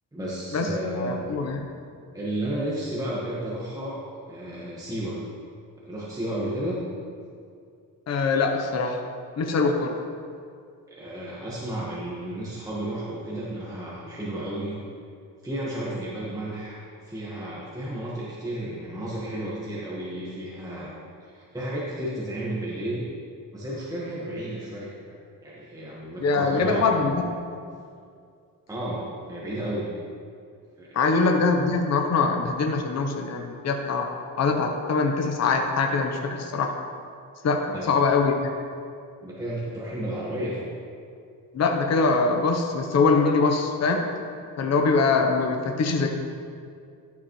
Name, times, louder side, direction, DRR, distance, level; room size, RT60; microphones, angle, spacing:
voice 1, 0.1-1.1 2.1-4.0 4.3-5.2 5.8-6.8 10.9-14.8 15.4-20.9 21.2-23.0 23.5-25.1 25.4-27.0 28.7-29.9 30.8-31.2 37.7-37.9 39.2-40.6, right 1 dB, 10° right, -7 dB, 1.5 m, -32 dB
voice 2, 1.0-1.7 8.1-9.0 9.4-10.0 26.2-27.2 30.9-34.1 34.4-36.7 37.4-38.5 41.5-44.0 44.6-46.1, left 4 dB, 45° left, 3 dB, 1.0 m, -23 dB
12.0 x 7.1 x 3.2 m, 2.3 s
cardioid pair, 115°, 36 cm